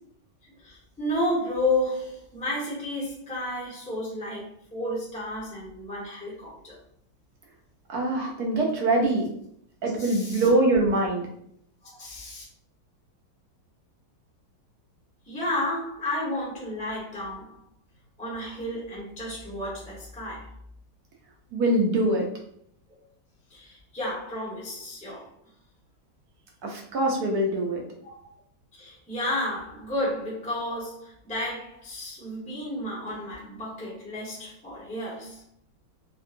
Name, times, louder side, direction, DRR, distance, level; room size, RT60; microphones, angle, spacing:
voice 1, 0.6-6.8 10.0-10.5 11.8-12.4 15.2-17.6 18.2-20.5 23.5-25.3 28.0-28.3 28.8-35.4, left 1 dB, 5° left, -6 dB, 0.6 m, -32 dB
voice 2, 7.9-9.3 9.8-11.3 21.5-22.3 26.6-27.8, right 2 dB, 65° right, 0 dB, 1.1 m, -23 dB
3.7 x 2.3 x 2.5 m, 0.68 s
omnidirectional pair, 2.0 m